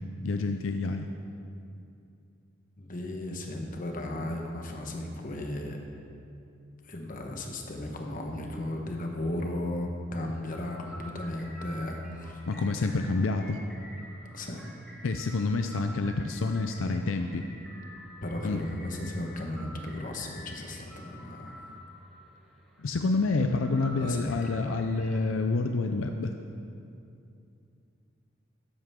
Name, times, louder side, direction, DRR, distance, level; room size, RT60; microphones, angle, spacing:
voice 1, 0.2-1.1 12.5-13.6 15.0-17.4 18.4-18.6 22.8-26.3, left 3 dB, 80° left, 6 dB, 0.5 m, -28 dB
voice 2, 2.8-5.8 6.8-12.4 14.3-14.6 18.2-21.5 24.0-24.5, left 1 dB, 45° left, 2 dB, 1.2 m, -35 dB
sound 1, 10.4-25.3, equal, ahead, 1.3 m, -49 dB
13.5 x 9.8 x 3.7 m, 2.6 s
head